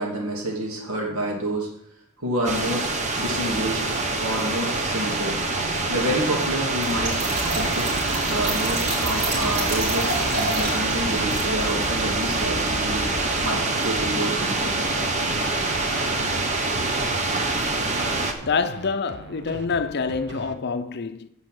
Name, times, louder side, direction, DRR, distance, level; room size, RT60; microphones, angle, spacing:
voice 1, 0.0-1.7 2.2-2.9 3.2-3.8 4.2-5.4 5.9-7.2 7.5-7.9 8.3-13.1 13.4-15.0, right 1 dB, 65° right, 2.4 m, -28 dB
sound 1, 2.4-18.3, right 2 dB, 30° right, 1.1 m, -25 dB
Trickle dribble / Fill (with liquid), 6.8-13.6, right 1 dB, 85° right, 3.9 m, -31 dB
sound 2, 7.3-20.6, right 3 dB, 50° right, 0.8 m, -40 dB
voice 2, 18.4-21.3, left 5 dB, 50° left, 0.6 m, -26 dB
8.5 x 5.5 x 7.6 m
head